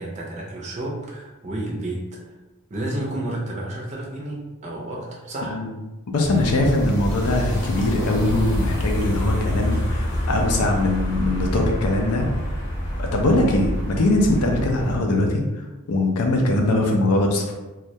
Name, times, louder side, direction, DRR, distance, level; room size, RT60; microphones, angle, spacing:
voice 1, 0.0-2.0 2.7-5.6, right 1 dB, 30° right, -2 dB, 0.4 m, -31 dB
voice 2, 6.1-12.6 13.0-17.5, left 2 dB, 85° left, 2 dB, 0.5 m, -21 dB
sound 1, 6.2-15.0, equal, 55° left, 0.8 m, -27 dB
2.2 x 2.1 x 2.7 m, 1.1 s
head